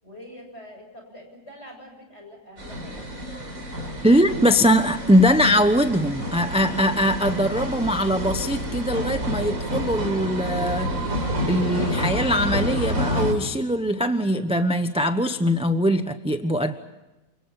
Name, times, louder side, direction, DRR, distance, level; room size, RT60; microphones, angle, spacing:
voice 1, 0.0-3.2, equal, 40° left, 3 dB, 7.8 m, -44 dB
sound 1, 2.6-13.3, equal, 55° right, 4.7 m, -29 dB
voice 2, 4.0-11.2 11.5-16.8, equal, 5° right, 8 dB, 0.8 m, -21 dB
29.5 x 26.0 x 5.7 m, 1.0 s
omnidirectional pair, 1.8 m